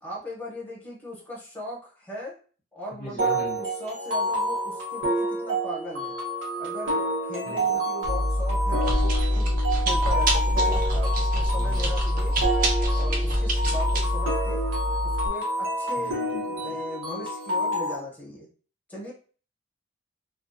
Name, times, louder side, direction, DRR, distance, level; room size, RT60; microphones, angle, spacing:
voice 1, 0.0-2.4 2.7-6.2 6.6-12.3 12.9-14.6 15.0-16.2 16.6-18.5 18.9-19.1, left 1 dB, 10° left, -4 dB, 0.8 m, -38 dB
voice 2, 2.9-3.6 7.4-7.8 11.6-11.9 16.0-16.7, left 2 dB, 30° left, -4 dB, 0.5 m, -41 dB
sound 1, 3.2-18.0, right 1 dB, 90° right, 0.9 m, -29 dB
Chewing mastication, 8.0-15.3, equal, 50° right, 0.6 m, -24 dB
2.4 x 2.2 x 2.5 m, 0.40 s
head